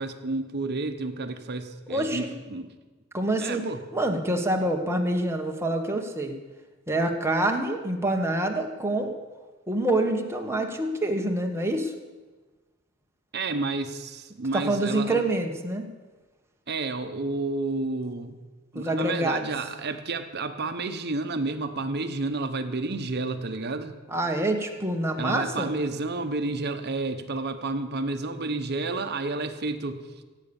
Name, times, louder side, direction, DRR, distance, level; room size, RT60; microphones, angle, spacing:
voice 1, 0.0-2.7 3.4-3.8 13.3-15.3 16.7-18.4 18.7-24.0 25.2-30.0, right 3 dB, 50° right, 8 dB, 1.0 m, -30 dB
voice 2, 1.9-2.3 3.1-3.6 3.9-6.4 6.9-9.1 9.7-11.9 14.5-15.9 18.7-19.5 24.1-25.7, right 1 dB, 10° right, 3 dB, 1.3 m, -26 dB
16.5 x 8.2 x 7.0 m, 1.3 s
head